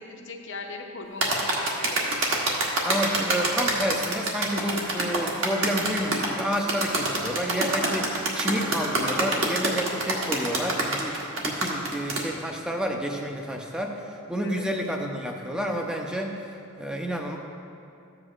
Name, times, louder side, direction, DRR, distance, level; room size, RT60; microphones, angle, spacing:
voice 1, 0.0-2.1 14.4-14.6, left 3 dB, 55° left, 2 dB, 0.8 m, -39 dB
sound 1, 1.2-12.2, right 2 dB, 60° right, 1.2 m, -26 dB
voice 2, 2.8-16.5 16.8-17.4, equal, 5° right, 1 dB, 0.6 m, -30 dB
13.5 x 7.9 x 2.5 m, 2.6 s
head